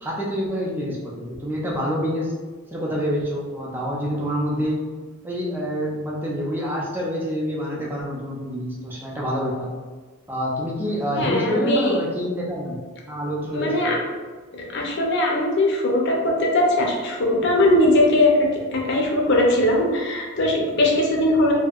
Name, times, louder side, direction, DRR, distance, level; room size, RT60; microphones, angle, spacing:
voice 1, 0.0-2.3 2.7-4.8 5.2-9.7 10.3-12.8 13.1-14.0, equal, 10° right, -4 dB, 0.4 m, -27 dB
voice 2, 11.1-12.0 13.5-14.0 14.5-21.5, left 1 dB, 50° left, -1 dB, 0.5 m, -20 dB
2.7 x 2.6 x 2.3 m, 1.4 s
head